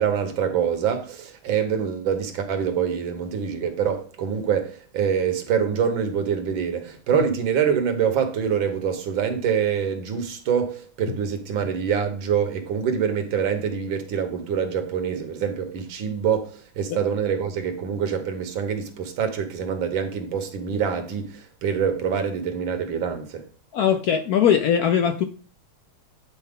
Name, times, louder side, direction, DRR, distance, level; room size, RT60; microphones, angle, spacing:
voice 1, 0.0-23.5, right 7 dB, 85° right, 1.8 m, -25 dB
voice 2, 23.7-25.2, left 8 dB, 75° left, 0.8 m, -20 dB
9.0 x 4.3 x 3.6 m
omnidirectional pair, 2.1 m